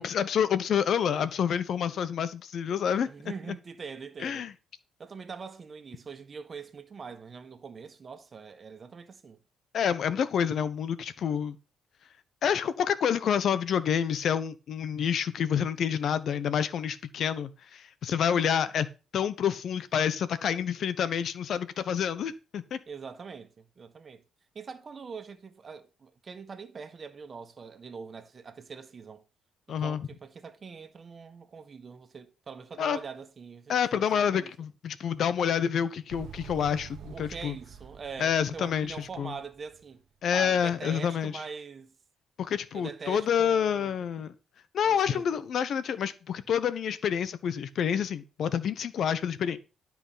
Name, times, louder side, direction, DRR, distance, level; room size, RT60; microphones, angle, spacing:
voice 1, 0.0-3.1 4.2-4.5 9.7-11.6 12.4-18.9 19.1-22.8 29.7-30.0 32.8-33.0 33.7-37.6 38.2-39.3 40.2-41.3 42.4-44.3 44.7-49.6, left 8 dB, 65° left, 1.1 m, -28 dB
voice 2, 3.1-4.5 5.0-9.4 18.2-18.7 22.9-24.2 24.5-29.2 29.7-34.5 37.0-40.0 40.3-41.9 42.7-44.3 44.9-45.3, right 5 dB, 40° right, 1.5 m, -43 dB
Motorcycle, 36.1-40.0, right 8 dB, 75° right, 1.3 m, -47 dB
12.0 x 6.0 x 5.8 m
cardioid pair, 90°, 0 cm